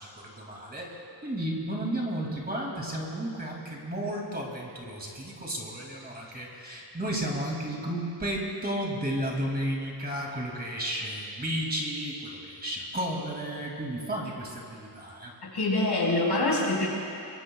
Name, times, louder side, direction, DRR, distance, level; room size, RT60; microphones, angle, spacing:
voice 1, 0.0-15.3, right 1 dB, 20° right, -2 dB, 2.5 m, -33 dB
voice 2, 15.4-16.9, left 2 dB, 65° left, -3 dB, 4.7 m, -25 dB
23.5 x 23.5 x 2.3 m, 2.7 s
wide cardioid pair, 170°, 43 cm